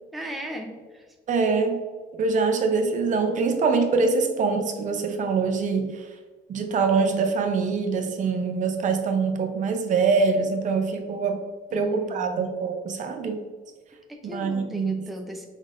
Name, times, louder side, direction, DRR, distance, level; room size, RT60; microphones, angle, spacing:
voice 1, 0.1-1.1 11.7-12.5 14.1-15.5, equal, ahead, 2 dB, 0.5 m, -37 dB
voice 2, 1.3-1.8 2.2-6.1 6.5-11.4 11.7-13.4 14.2-15.0, right 4 dB, 50° right, 5 dB, 0.7 m, -24 dB
5.1 x 3.8 x 2.5 m, 1.5 s
cardioid pair, 110°, 17 cm